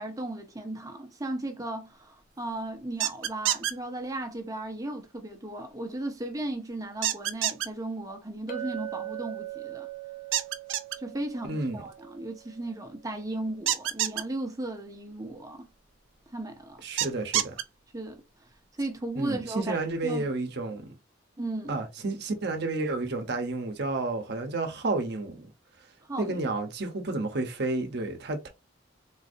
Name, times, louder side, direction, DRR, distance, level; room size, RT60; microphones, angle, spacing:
voice 1, 0.0-9.9 11.0-15.7 16.3-16.8 17.9-18.2 18.8-20.2 21.4-21.8 26.1-26.5, right 2 dB, 20° right, 0.7 m, -36 dB
sound 1, 3.0-3.7 7.0-7.7 10.3-11.0 13.7-14.2 17.0-17.6, right 11 dB, 80° right, 0.4 m, -26 dB
Chink clink, 8.5-12.9, right 14 dB, 45° left, 0.6 m, -40 dB
voice 2, 11.4-11.8 16.8-17.5 19.2-21.0 21.7-25.5 26.2-28.5, right 2 dB, 60° right, 0.8 m, -31 dB
3.9 x 2.6 x 2.5 m
head